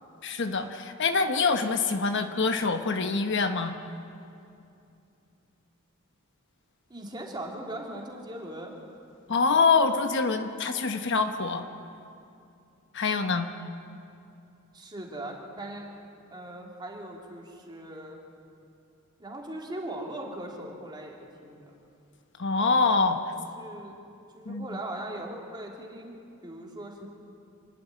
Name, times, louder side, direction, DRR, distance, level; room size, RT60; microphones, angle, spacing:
voice 1, 0.2-3.8 9.3-11.6 12.9-13.5 22.4-23.2 24.5-24.7, left 4 dB, 60° left, 7 dB, 1.1 m, -25 dB
voice 2, 6.9-9.0 14.7-15.9 16.3-18.2 19.2-21.7 23.4-24.0 24.3-26.2 26.4-27.1, right 1 dB, 20° right, -1 dB, 3.1 m, -39 dB
27.5 x 11.5 x 9.8 m, 2.6 s
head